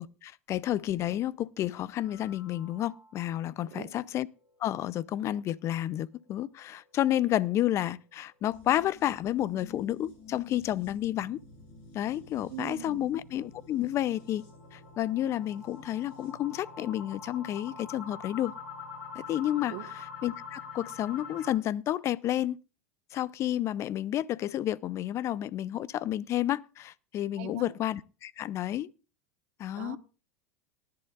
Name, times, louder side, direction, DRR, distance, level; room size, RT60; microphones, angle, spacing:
voice 1, 0.0-4.3 4.6-11.4 11.9-14.4 14.7-18.5 19.2-22.6 23.1-28.9 29.6-30.0, left 12 dB, 40° left, 0.5 m, -31 dB
sound 1, 1.9-3.4 3.8-3.9 4.3-4.4 4.8-4.9 9.7-21.5, left 5 dB, 80° left, 6.6 m, -46 dB
sound 2, 8.5-16.4 16.7-16.8, left 5 dB, 60° left, 6.3 m, -53 dB
voice 2, 12.5-13.1 19.7-19.9 27.4-27.7 29.7-30.0, right 13 dB, 65° right, 1.2 m, -41 dB
19.0 x 10.5 x 2.4 m
supercardioid pair, 115°, 7 cm